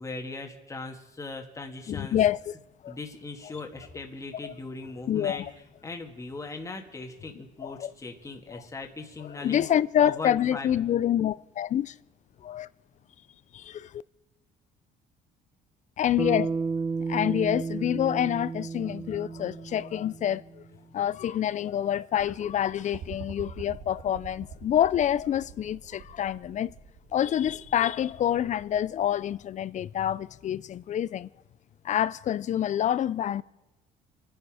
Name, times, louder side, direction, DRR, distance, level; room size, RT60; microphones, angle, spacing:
voice 1, 0.0-2.2 2.9-5.5 5.8-9.7 10.0-10.7, left 3 dB, 20° left, 1.9 m, -39 dB
voice 2, 1.9-2.5 2.8-2.9 4.4-4.5 5.1-5.5 7.6-7.9 8.5-8.6 9.4-11.9 12.4-12.7 13.5-14.0 16.0-16.6 17.1-20.4 20.9-26.7 27.1-31.3 31.8-33.4, left 10 dB, 45° left, 0.5 m, -27 dB
Bass guitar, 16.2-20.6, right 4 dB, 15° right, 0.5 m, -32 dB
sound 1, 22.2-29.4 30.5-30.6, right 6 dB, 80° right, 2.2 m, -45 dB
27.0 x 10.0 x 4.9 m
cardioid pair, 110°, 17 cm